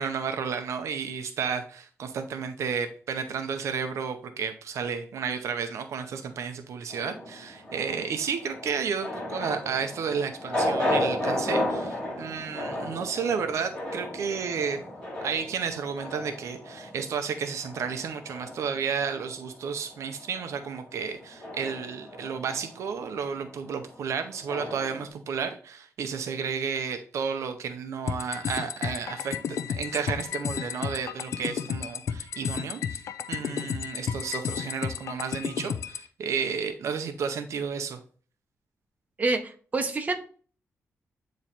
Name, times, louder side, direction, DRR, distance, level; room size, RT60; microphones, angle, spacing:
voice 1, 0.0-14.8 15.2-29.4 29.7-33.0 33.3-38.0, right 6 dB, 75° right, 7 dB, 0.7 m, -32 dB
sound 1, 6.9-19.5 19.8-25.1, left 1 dB, 15° left, 2.7 m, -34 dB
sound 2, 28.1-36.1, left 8 dB, 80° left, 0.5 m, -32 dB
voice 2, 39.2-40.2, right 3 dB, 30° right, 4 dB, 1.0 m, -27 dB
8.8 x 3.1 x 4.2 m, 0.41 s
wide cardioid pair, 145°, 5 cm